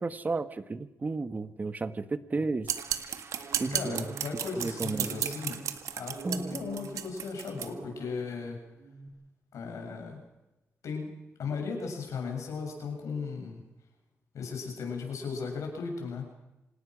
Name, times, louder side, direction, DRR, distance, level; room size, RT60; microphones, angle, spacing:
voice 1, 0.0-2.7 3.6-4.0 4.5-5.2 6.2-6.6, right 3 dB, 30° right, 12 dB, 1.3 m, -33 dB
sound 1, 2.6-7.7, right 9 dB, 85° right, 1.8 m, -34 dB
sound 2, 2.8-8.5 8.8-9.1, right 3 dB, 60° right, 3.4 m, -45 dB
voice 2, 3.7-5.6 5.9-8.6 9.5-10.2 10.8-11.1 11.4-13.6 14.3-16.2, left 5 dB, 80° left, 3 dB, 7.5 m, -36 dB
26.5 x 18.5 x 6.3 m, 0.97 s
cardioid pair, 85°, 5 cm